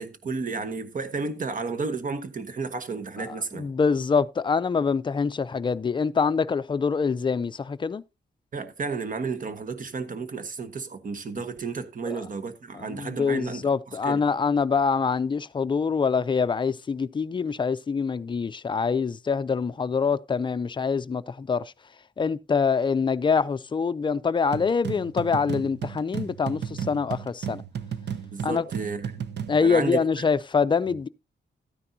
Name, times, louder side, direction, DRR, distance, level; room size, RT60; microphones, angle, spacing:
voice 1, 0.0-3.7 8.5-13.7 14.0-14.2 28.3-29.2 29.6-30.0 30.9-31.0, right 4 dB, 50° right, 1.2 m, -32 dB
voice 2, 3.2-8.0 12.0-12.3 12.7-21.7 22.2-27.6 28.4-28.7 29.5-31.1, left 5 dB, 25° left, 0.4 m, -25 dB
sound 1, 24.5-29.6, right 8 dB, 70° right, 0.8 m, -34 dB
13.0 x 9.7 x 2.7 m
wide cardioid pair, 130°, 18 cm